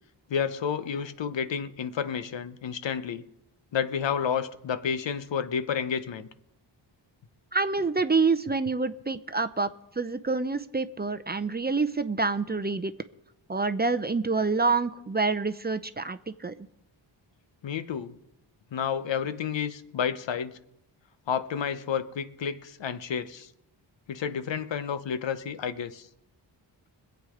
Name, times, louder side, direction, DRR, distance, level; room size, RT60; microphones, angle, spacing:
voice 1, 0.3-3.2 3.7-6.3 17.6-18.2 18.7-20.6 21.3-23.5 24.1-26.1, left 7 dB, 65° left, 0.9 m, -30 dB
voice 2, 7.5-12.9 13.5-16.5, right 4 dB, 20° right, 0.6 m, -27 dB
21.5 x 8.2 x 5.0 m
cardioid pair, 65°, 47 cm